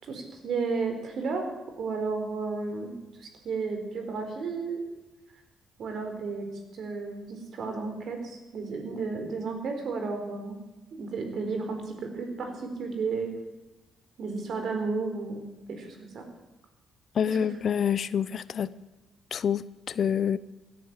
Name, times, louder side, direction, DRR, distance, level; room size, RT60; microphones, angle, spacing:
voice 1, 0.0-1.5 1.8-2.9 3.2-4.8 5.8-6.4 6.7-10.6 10.9-13.3 14.2-16.3 17.3-17.4, right 4 dB, 60° right, 5 dB, 4.2 m, -33 dB
voice 2, 17.1-18.7 19.3-20.4, left 8 dB, 55° left, 17 dB, 0.6 m, -27 dB
17.0 x 10.5 x 7.4 m, 1.1 s
cardioid pair, 90°, 0 cm